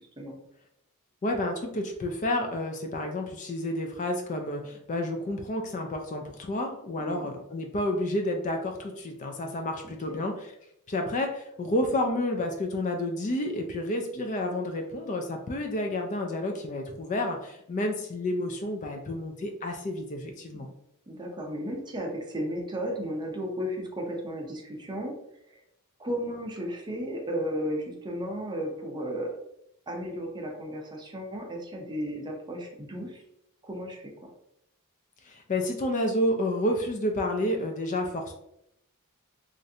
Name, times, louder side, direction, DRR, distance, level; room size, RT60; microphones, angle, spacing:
voice 1, 1.2-10.3 10.9-20.7 35.2-38.3, left 1 dB, 35° left, 3 dB, 0.3 m, -30 dB
voice 2, 7.0-7.3 10.1-10.2 20.5-20.7 21.1-25.2 25.5-25.6 26.0-29.4 29.9-33.2 33.6-34.3, equal, 20° right, 0 dB, 0.6 m, -34 dB
3.1 x 2.5 x 2.7 m, 0.77 s
head